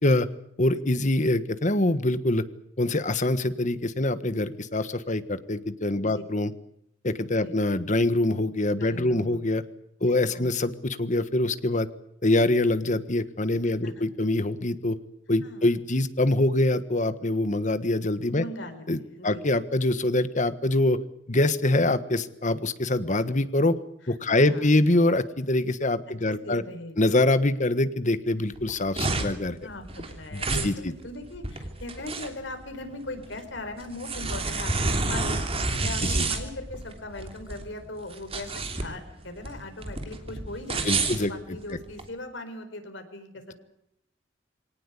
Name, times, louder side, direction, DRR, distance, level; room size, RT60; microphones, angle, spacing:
voice 1, 0.6-2.4 2.8-6.5 7.0-9.6 10.0-11.9 12.2-15.0 15.3-18.4 18.9-21.0 21.3-23.7 24.1-26.6 27.0-29.6 30.3-30.9 36.1-36.3 40.8-41.6, left 2 dB, 40° left, 13 dB, 1.4 m, -24 dB
voice 2, 5.9-6.2 7.3-7.6 8.8-9.4 10.0-10.5 13.8-14.1 15.4-15.7 18.3-19.4 24.3-24.7 26.3-27.0 29.6-43.5, left 2 dB, 75° left, 7 dB, 4.7 m, -39 dB
sound 1, 28.5-42.1, right 3 dB, 30° right, 3.1 m, -30 dB
24.0 x 18.5 x 8.4 m, 0.78 s
head